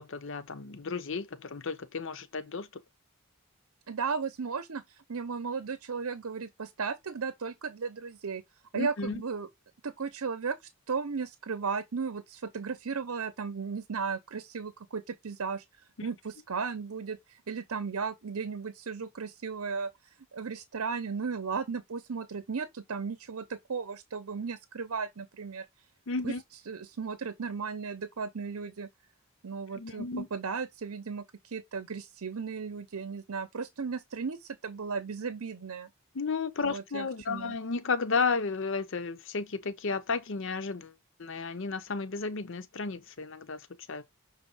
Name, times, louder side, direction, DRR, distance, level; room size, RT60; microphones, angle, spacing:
voice 1, 0.0-2.7 8.7-9.2 16.0-16.1 26.1-26.4 29.7-30.3 36.1-40.9 41.2-44.0, left 4 dB, 55° left, 0.7 m, -33 dB
voice 2, 3.9-8.4 8.7-9.5 9.8-15.6 16.0-25.7 26.2-26.3 26.7-28.9 29.4-35.9 36.6-37.5, right 5 dB, 75° right, 0.7 m, -35 dB
6.2 x 4.1 x 3.9 m
head